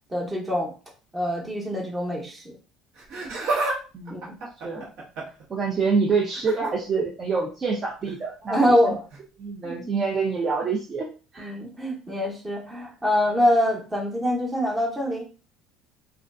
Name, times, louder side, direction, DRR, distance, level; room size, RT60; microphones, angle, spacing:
voice 1, 0.1-0.7 1.1-2.6 4.1-4.4 8.5-9.1 9.6-9.9 11.4-15.2, equal, 15° right, -1 dB, 0.8 m, -24 dB
Laughter, 2.9-3.8 4.1-5.4 6.3-6.7 8.0-8.2 9.1-9.2, right 2 dB, 70° right, 0.9 m, -29 dB
voice 2, 3.9-4.3 4.6-4.9 5.5-9.0 9.4-11.5, right 4 dB, 35° right, -1 dB, 0.4 m, -27 dB
2.3 x 2.3 x 2.3 m, 0.35 s
supercardioid pair, 110°, 0 cm